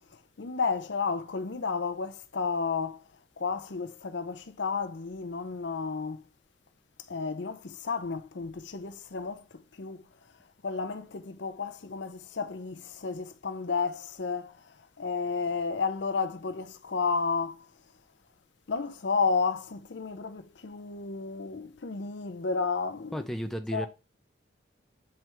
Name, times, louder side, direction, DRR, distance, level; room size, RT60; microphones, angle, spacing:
voice 1, 0.4-3.0 3.4-6.2 7.1-9.4 9.8-10.0 10.6-14.5 15.0-17.6 18.7-23.3 23.7-23.9, left 5 dB, 70° left, 0.6 m, -32 dB
voice 2, 23.1-23.9, equal, ahead, 0.5 m, -33 dB
7.6 x 3.4 x 4.5 m
head